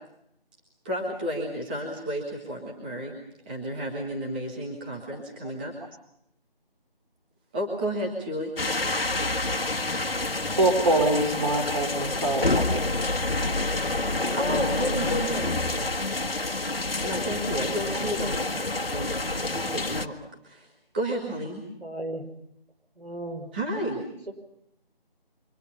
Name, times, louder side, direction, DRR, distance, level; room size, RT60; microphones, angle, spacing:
voice 1, 0.8-3.1 3.4-5.7 7.5-8.5 14.3-15.5 17.0-20.1 20.4-21.6 23.5-24.0, equal, 10° right, -3 dB, 1.6 m, -32 dB
sound 1, 8.6-20.1, left 2 dB, 70° left, 1.6 m, -28 dB
voice 2, 10.6-12.8, right 2 dB, 35° right, 2 dB, 4.3 m, -24 dB
voice 3, 21.8-22.2 23.0-23.5 24.3-24.4, right 1 dB, 85° right, 5 dB, 5.2 m, -35 dB
27.5 x 24.0 x 5.6 m, 0.74 s
figure-of-eight pair, 165°, 30 cm